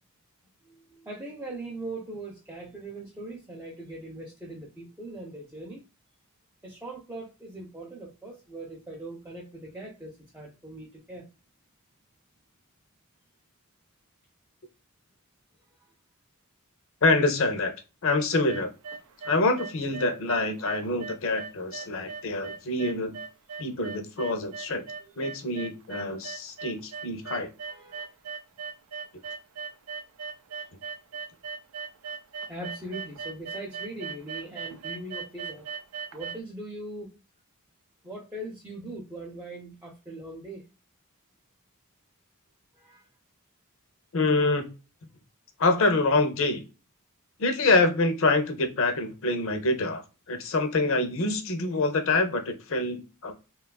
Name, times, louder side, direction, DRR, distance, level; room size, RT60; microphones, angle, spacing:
voice 1, 0.6-5.8 6.6-11.3 25.1-25.3 27.7-28.2 30.6-30.7 32.5-35.7 36.1-37.1 38.0-40.7 42.7-43.1, right 1 dB, 10° right, 0.5 m, -41 dB
voice 2, 17.0-17.7 18.0-18.7 19.3-23.2 23.6-24.8 25.2-27.5 44.1-44.7 45.6-46.6 47.4-50.0 50.3-53.3, left 2 dB, 60° left, 0.6 m, -26 dB
sound 1, 18.3-36.4, right 5 dB, 80° right, 0.5 m, -38 dB
3.0 x 2.3 x 2.2 m
head